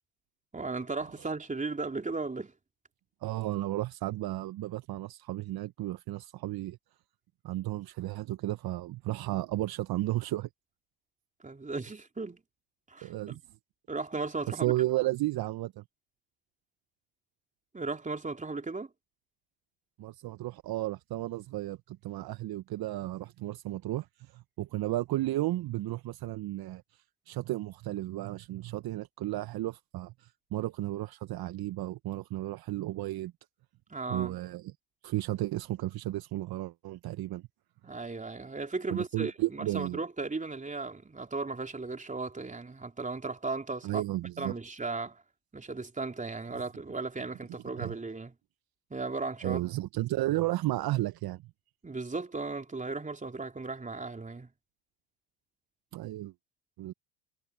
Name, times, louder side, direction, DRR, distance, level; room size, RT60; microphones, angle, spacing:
voice 1, 0.5-2.5 11.4-12.4 12.9-13.4 13.9-14.7 17.7-18.9 33.9-34.4 37.8-44.0 44.4-45.2 45.5-48.3 48.9-49.6 51.8-54.5, right 3 dB, 15° right, 3.4 m, -36 dB
voice 2, 3.2-6.8 7.4-10.5 13.0-13.4 14.5-15.8 20.0-33.3 34.1-34.7 35.0-37.4 38.9-40.0 43.8-44.6 47.8-48.0 49.4-51.4 55.9-56.3 56.8-56.9, right 16 dB, 45° right, 1.3 m, -33 dB
hypercardioid pair, 70°, 49 cm